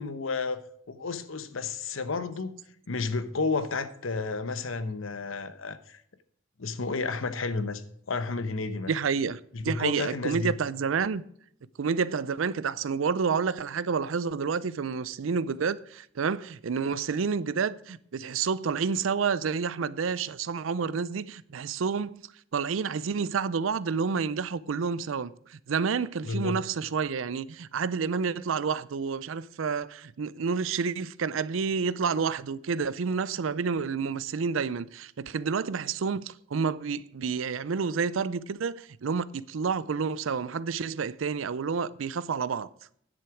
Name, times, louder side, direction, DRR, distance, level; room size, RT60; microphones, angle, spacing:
voice 1, 0.0-2.6 2.9-6.0 6.6-8.9 9.5-10.5 26.2-26.6, left 4 dB, 90° left, 0.9 m, -31 dB
voice 2, 8.9-11.2 11.8-22.2 22.5-42.7, right 5 dB, 80° right, 0.5 m, -29 dB
9.9 x 7.7 x 4.9 m
head